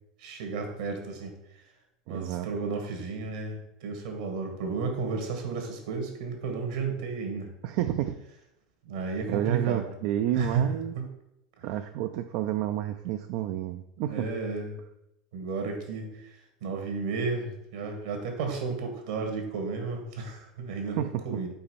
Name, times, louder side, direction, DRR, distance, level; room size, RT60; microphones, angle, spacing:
voice 1, 0.2-1.3 2.1-7.5 8.8-9.9 10.3-10.7 10.9-11.1 11.6-11.7 14.0-14.8 15.3-16.3 16.6-21.5, right 4 dB, 75° right, 3 dB, 1.5 m, -32 dB
voice 2, 2.1-2.5 7.6-8.2 9.3-11.0 11.6-14.3 21.0-21.4, right 12 dB, 60° right, 8 dB, 0.3 m, -30 dB
5.5 x 4.4 x 4.2 m, 0.85 s
hypercardioid pair, 85°, 3 cm